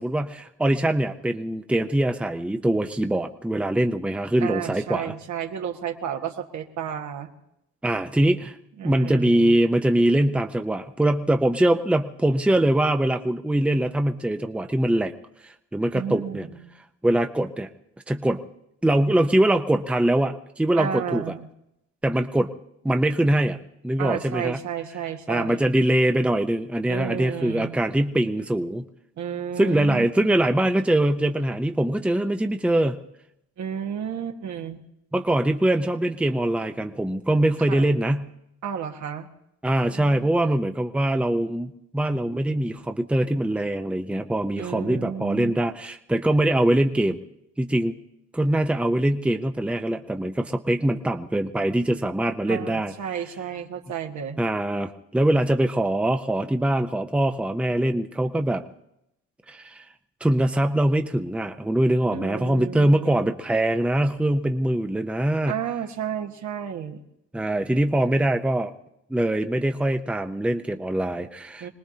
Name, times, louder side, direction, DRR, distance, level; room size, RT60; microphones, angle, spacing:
voice 1, 0.0-5.1 7.8-8.6 8.8-15.1 15.4-16.5 17.0-17.7 18.1-18.4 18.8-21.3 22.0-22.5 22.8-24.6 25.3-28.9 29.6-33.0 35.1-38.3 39.6-47.2 47.6-48.0 48.3-52.9 54.4-58.6 59.5-59.8 60.2-65.6 67.3-68.7 69.1-71.7, right 1 dB, 5° right, 6 dB, 0.8 m, -23 dB
voice 2, 4.4-7.3 8.8-9.5 15.9-16.6 20.7-21.5 24.0-25.6 26.9-27.8 29.2-30.3 33.6-34.8 37.7-37.9 38.6-39.3 44.6-45.5 52.5-54.4 62.1-63.2 65.5-67.0 71.6-71.7, right 8 dB, 70° right, 3 dB, 1.6 m, -32 dB
26.0 x 19.0 x 2.9 m, 0.81 s
cardioid pair, 90°, 30 cm